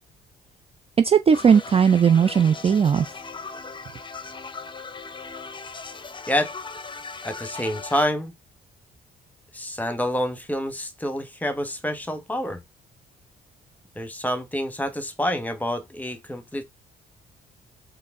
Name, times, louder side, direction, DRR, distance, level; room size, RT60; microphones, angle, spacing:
voice 1, 1.0-3.1, right 7 dB, 30° right, 0.4 m, -17 dB
sound 1, 1.3-8.1, left 4 dB, 25° left, 0.7 m, -38 dB
voice 2, 7.2-8.3 9.5-12.6 14.0-16.6, equal, 10° left, 1.1 m, -27 dB
4.6 x 3.1 x 3.6 m
cardioid pair, 90°, 20 cm